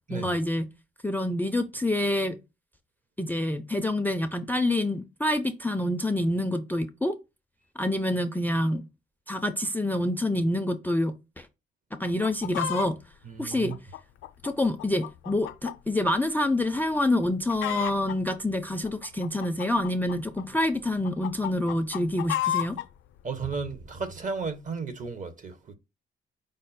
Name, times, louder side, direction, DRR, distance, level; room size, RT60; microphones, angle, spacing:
voice 1, 0.1-0.7 1.0-2.4 3.2-7.2 7.8-8.9 9.3-11.5 12.0-13.0 13.4-13.8 14.4-22.8, left 1 dB, 10° left, 0.4 m, -27 dB
Chicken rooster, 12.0-12.9 13.5-15.8 16.1-16.2 16.7-17.0 17.2-18.1 18.8-20.6 21.0-22.8 23.5-23.6, left 12 dB, 75° left, 0.4 m, -32 dB
voice 2, 13.2-13.7 23.2-25.7, right 4 dB, 40° right, 0.9 m, -34 dB
5.1 x 2.1 x 4.0 m
cardioid pair, 90°, 20 cm